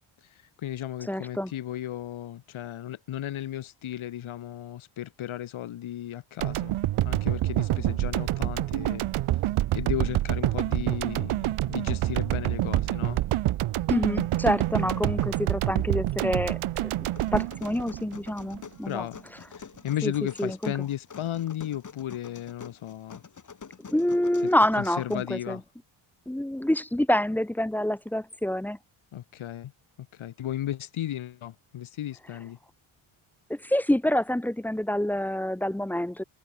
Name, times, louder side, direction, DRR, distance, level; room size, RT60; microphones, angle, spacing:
voice 1, 0.2-6.7 7.0-9.4 9.7-13.2 14.8-15.0 18.8-19.2 19.5-23.2 24.7-25.6 29.1-29.7 30.0-32.6, left 12 dB, 70° left, 2.7 m, -35 dB
voice 2, 1.1-1.5 13.9-19.0 20.0-20.1 20.4-20.7 23.9-25.6 26.3-28.8 33.5-36.2, left 1 dB, 5° left, 0.5 m, -27 dB
sound 1, 6.4-18.6, right 14 dB, 80° right, 1.4 m, -27 dB
sound 2, 17.2-25.1, left 6 dB, 35° left, 5.9 m, -46 dB
cardioid pair, 120°, 50 cm